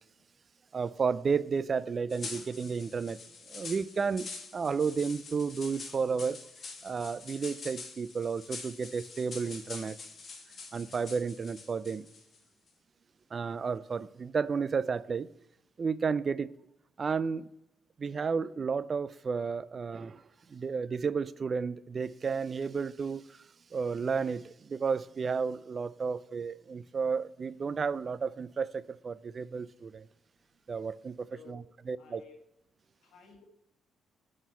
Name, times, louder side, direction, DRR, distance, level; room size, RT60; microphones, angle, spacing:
voice 1, 0.7-3.2 3.5-6.4 6.8-10.0 10.7-12.1 13.3-15.3 15.8-16.5 17.0-17.5 18.0-20.2 20.5-23.4 23.7-30.1 30.7-31.6 31.9-32.2, right 5 dB, 40° right, 0.4 m, -32 dB
sound 1, 2.1-12.4, left 4 dB, 45° left, 1.7 m, -45 dB
voice 2, 31.3-31.7 32.0-32.4 33.0-33.4, left 6 dB, 75° left, 1.4 m, -53 dB
9.1 x 4.4 x 5.5 m
cardioid pair, 90°, 0 cm